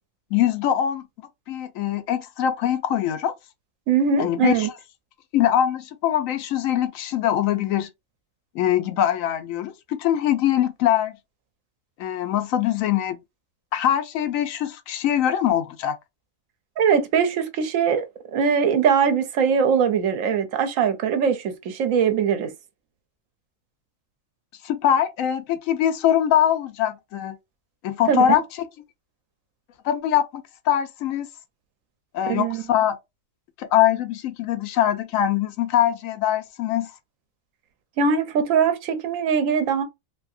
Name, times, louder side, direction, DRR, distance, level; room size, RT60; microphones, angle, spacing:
voice 1, 0.3-1.0 1.5-3.3 4.2-4.7 5.3-7.9 8.5-11.2 12.0-13.2 13.7-16.0 24.6-27.4 27.8-28.4 29.8-31.3 32.1-33.0 33.6-36.9, left 10 dB, 90° left, 1.0 m, -22 dB
voice 2, 3.9-4.7 16.8-18.0 18.3-22.5 28.1-28.4 32.3-32.6 38.0-39.8, right 6 dB, 85° right, 1.0 m, -21 dB
2.7 x 2.7 x 2.4 m
omnidirectional pair, 1.4 m